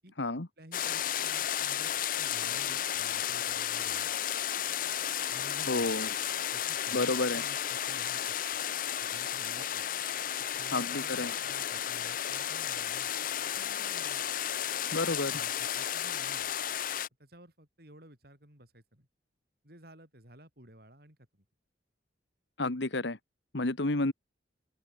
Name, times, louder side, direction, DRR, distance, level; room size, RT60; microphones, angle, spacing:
voice 1, 0.0-4.2 5.3-6.0 6.5-8.4 9.1-9.9 10.5-13.1 13.5-14.2 14.8-16.5 17.2-19.1 19.6-21.5, right 1 dB, 55° right, 6.9 m, -54 dB
sound 1, 0.7-17.1, left 10 dB, 45° left, 0.7 m, -33 dB
voice 2, 5.7-6.1 6.9-7.4 10.7-11.3 14.9-15.3 22.6-23.2 23.5-24.1, left 2 dB, 75° left, 1.7 m, -30 dB
open air
head